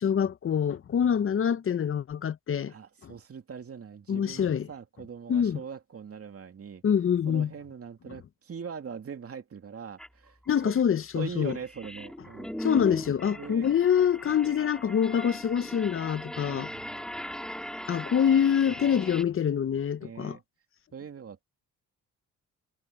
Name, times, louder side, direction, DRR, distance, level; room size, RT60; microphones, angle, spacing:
voice 1, 0.0-2.7 3.0-3.1 4.1-4.7 5.3-5.6 6.8-7.5 10.5-11.6 12.6-16.7 17.9-20.4, left 8 dB, 40° left, 0.8 m, -25 dB
voice 2, 2.7-6.8 7.2-10.7 11.1-12.6 13.3-13.7 16.5-17.1 20.0-20.4 20.9-21.4, right 6 dB, 45° right, 2.6 m, -42 dB
sound 1, 10.0-10.1 10.6-19.2, equal, ahead, 2.5 m, -39 dB
cardioid pair, 90°, 34 cm